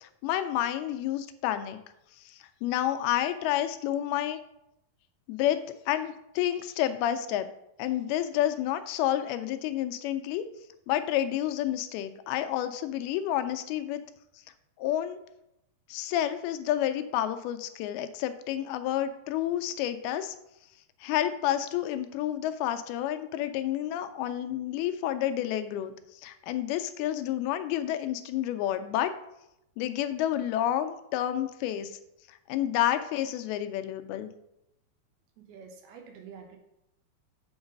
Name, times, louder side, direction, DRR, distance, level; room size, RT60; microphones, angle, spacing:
voice 1, 0.0-1.8 2.2-4.4 5.3-7.5 7.8-10.4 10.9-14.0 14.8-15.2 15.9-20.4 21.0-29.1 29.8-32.0 32.3-34.3, left 12 dB, 90° left, 9 dB, 2.5 m, -30 dB
voice 2, 35.4-36.6, right 6 dB, 90° right, 3 dB, 3.1 m, -47 dB
8.0 x 3.9 x 5.2 m, 0.84 s
omnidirectional pair, 4.4 m